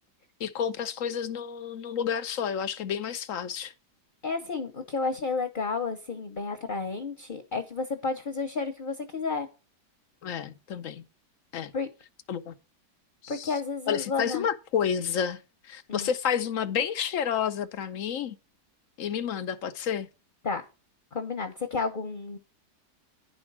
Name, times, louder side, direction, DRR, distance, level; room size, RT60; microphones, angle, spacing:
voice 1, 0.4-3.7 10.2-11.0 11.5-11.7 12.3-12.5 13.2-13.5 13.9-15.4 15.6-18.4 19.0-20.1, left 8 dB, 60° left, 1.0 m, -30 dB
voice 2, 4.2-9.5 11.7-11.9 13.3-14.5 15.9-16.1 20.4-20.6 21.1-22.4, left 4 dB, 35° left, 1.0 m, -31 dB
10.5 x 5.2 x 6.0 m
omnidirectional pair, 1.8 m